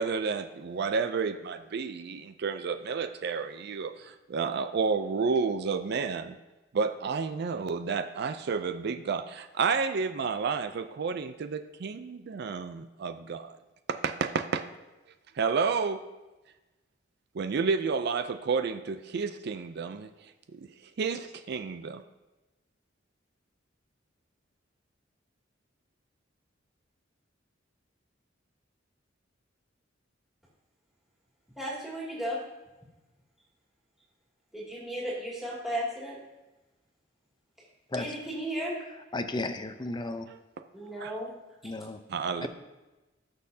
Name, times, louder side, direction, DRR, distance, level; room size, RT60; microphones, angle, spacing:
voice 1, 0.0-6.4 6.7-13.6 13.9-14.7 15.4-16.0 17.3-20.1 20.5-20.7 21.0-22.0 41.0-41.1 42.1-42.5, right 5 dB, 60° right, 10 dB, 0.4 m, -30 dB
voice 2, 31.6-32.4 34.5-36.2 38.0-38.8 40.7-41.3, equal, ahead, -5 dB, 2.4 m, -34 dB
voice 3, 39.1-40.3 41.6-42.0 42.4-42.5, left 2 dB, 25° left, 8 dB, 0.6 m, -34 dB
17.0 x 6.5 x 2.7 m, 1.1 s
head